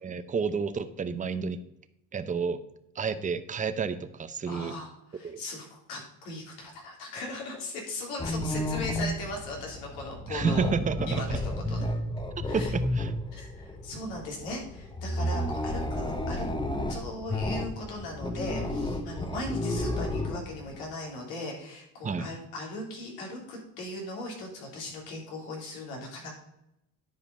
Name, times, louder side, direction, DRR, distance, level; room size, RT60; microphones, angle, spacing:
voice 1, 0.0-1.6 2.1-2.6 3.0-4.8 5.2-5.4 10.3-11.4 12.5-13.1 22.0-22.3, right 5 dB, 20° right, 11 dB, 0.7 m, -30 dB
voice 2, 4.5-10.7 11.1-11.4 11.7-11.8 12.4-12.7 13.3-16.5 16.9-26.3, left 2 dB, 90° left, -1 dB, 3.4 m, -38 dB
sound 1, 8.2-20.8, left 1 dB, 15° left, 1.1 m, -32 dB
10.0 x 5.1 x 5.3 m, 0.83 s
cardioid pair, 105°, 35 cm